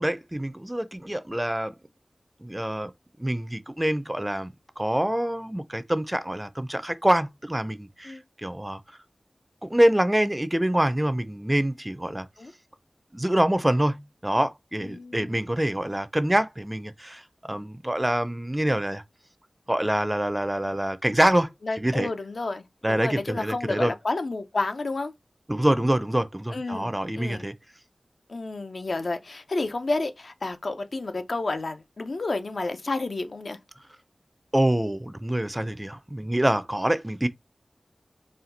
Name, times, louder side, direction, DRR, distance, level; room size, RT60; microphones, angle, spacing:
voice 1, 0.0-1.7 2.4-2.9 3.2-8.8 9.6-12.3 13.1-17.2 17.5-19.0 19.7-21.5 21.8-22.1 22.8-23.9 25.5-27.6 34.5-37.3, right 1 dB, 15° right, 0.5 m, -25 dB
voice 2, 14.8-15.4 21.6-25.1 26.5-27.5 28.3-33.6, left 3 dB, 75° left, 0.6 m, -30 dB
4.3 x 2.3 x 3.8 m
wide cardioid pair, 60°, 0 cm